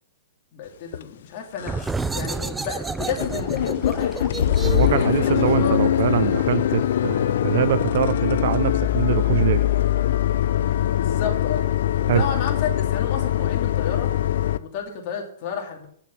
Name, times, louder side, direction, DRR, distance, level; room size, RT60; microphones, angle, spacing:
voice 1, 0.5-1.7 2.1-6.3 10.9-11.6 12.0-14.1 14.6-15.9, left 6 dB, 45° left, 1 dB, 2.7 m, -32 dB
sound 1, 0.9-1.0 1.5-1.9 2.2-2.3 2.6-2.8 3.0-14.6, left 11 dB, 65° left, 0.5 m, -22 dB
sound 2, 1.6-7.0, right 3 dB, 10° right, 0.3 m, -32 dB
voice 2, 4.6-9.7 12.1-12.3, right 11 dB, 60° right, 15 dB, 0.5 m, -23 dB
8.3 x 7.0 x 7.1 m, 0.64 s
hypercardioid pair, 140°, 0 cm